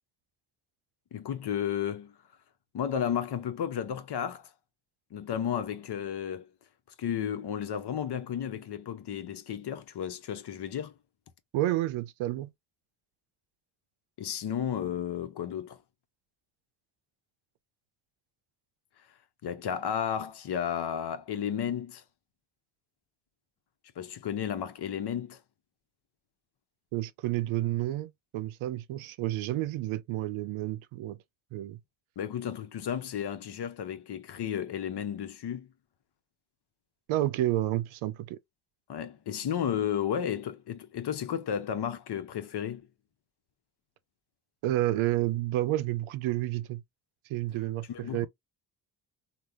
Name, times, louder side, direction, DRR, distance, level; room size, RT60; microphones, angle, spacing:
voice 1, 1.1-2.2 2.7-4.5 5.1-6.5 7.0-10.9 14.2-15.8 19.4-22.0 24.0-25.4 32.2-35.7 38.9-42.9 47.9-48.3, left 9 dB, 55° left, 0.8 m, -33 dB
voice 2, 11.5-12.5 26.9-31.2 31.5-31.8 37.1-38.4 44.6-46.8 47.3-48.3, right 15 dB, 70° right, 0.6 m, -30 dB
3.4 x 2.2 x 2.6 m
supercardioid pair, 50°, 50 cm